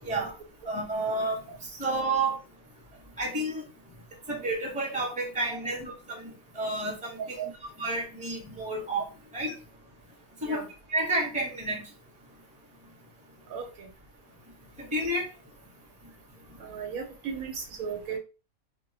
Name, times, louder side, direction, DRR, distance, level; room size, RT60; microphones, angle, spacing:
voice 1, 0.6-1.4 1.8-2.4 3.2-3.6 4.3-7.5 7.8-9.0 9.3-9.5 10.4-11.9 14.8-15.2, right 2 dB, 5° right, -2 dB, 0.7 m, -30 dB
voice 2, 13.5-13.9 16.6-18.2, right 6 dB, 80° right, 4 dB, 1.1 m, -36 dB
2.4 x 2.1 x 3.9 m, 0.31 s
omnidirectional pair, 1.5 m